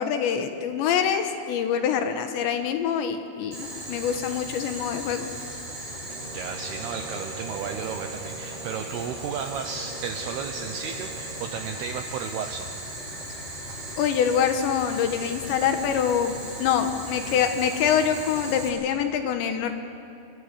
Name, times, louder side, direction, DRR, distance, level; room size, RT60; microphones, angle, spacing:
voice 1, 0.0-5.3 14.0-19.7, left 8 dB, 70° left, 7 dB, 3.1 m, -25 dB
Boiling, 3.5-18.7, right 1 dB, 40° right, 9.4 m, -37 dB
Brass instrument, 6.0-11.5, right 3 dB, 65° right, 1.7 m, -42 dB
voice 2, 6.3-12.7, right 7 dB, 80° right, 6 dB, 2.3 m, -34 dB
27.0 x 23.5 x 6.8 m, 2.9 s
omnidirectional pair, 5.8 m